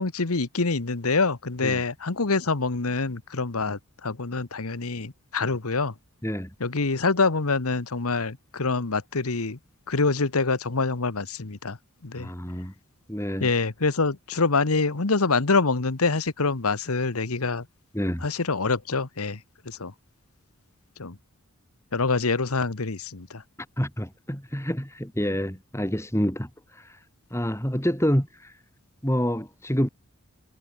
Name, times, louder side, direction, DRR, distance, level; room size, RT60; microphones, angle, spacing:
voice 1, 0.0-5.9 6.6-9.6 9.9-11.8 12.0-12.3 13.4-17.6 18.2-19.4 19.7-19.9 21.0-21.1 21.9-23.4, left 3 dB, 80° left, 1.3 m, -25 dB
voice 2, 6.2-6.5 12.1-12.7 13.1-13.5 17.9-18.2 23.8-27.0 27.3-28.6 29.0-29.9, equal, 10° left, 4.3 m, -28 dB
head